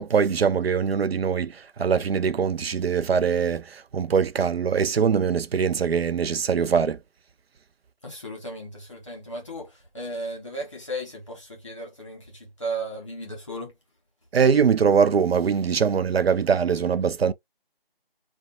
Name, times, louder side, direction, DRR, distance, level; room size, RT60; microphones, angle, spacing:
voice 1, 0.0-7.0 14.3-17.3, right 6 dB, 85° right, 0.5 m, -22 dB
voice 2, 8.0-13.7, right 1 dB, 30° left, 1.1 m, -35 dB
2.5 x 2.2 x 2.6 m
figure-of-eight pair, 175°, 29 cm